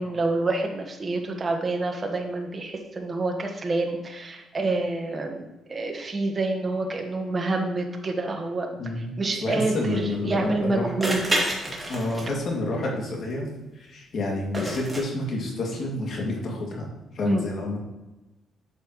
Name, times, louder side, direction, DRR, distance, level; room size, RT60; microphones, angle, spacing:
voice 1, 0.0-8.7 9.2-11.6 17.2-17.4, right 2 dB, 30° right, 3 dB, 1.5 m, -27 dB
voice 2, 8.8-10.9 11.9-13.5 13.7-16.9 17.1-17.8, left 2 dB, 60° left, -1 dB, 2.4 m, -29 dB
sound 1, 9.8-9.9 11.0-12.5 14.5-15.0, right 1 dB, 15° right, 2.4 m, -27 dB
9.4 x 6.9 x 3.2 m, 1.1 s
cardioid pair, 90°, 0 cm